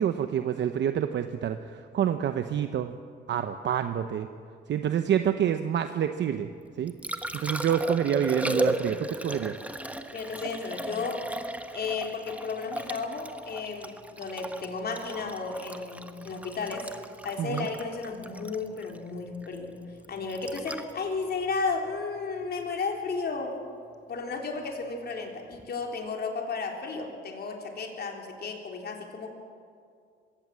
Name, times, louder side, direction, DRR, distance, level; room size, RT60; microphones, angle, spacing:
voice 1, 0.0-2.9 3.3-4.3 4.7-6.5 6.8-6.9 7.3-9.5 17.4-17.7, right 9 dB, 65° right, 9 dB, 0.9 m, -27 dB
Liquid, 6.6-22.7 25.5-25.7, right 1 dB, 5° right, 1.3 m, -36 dB
voice 2, 10.1-11.3 11.7-16.9 17.2-19.8 20.1-23.6 24.1-29.3, left 4 dB, 55° left, 2 dB, 3.6 m, -33 dB
22.0 x 16.5 x 7.6 m, 2.3 s
cardioid pair, 90°, 20 cm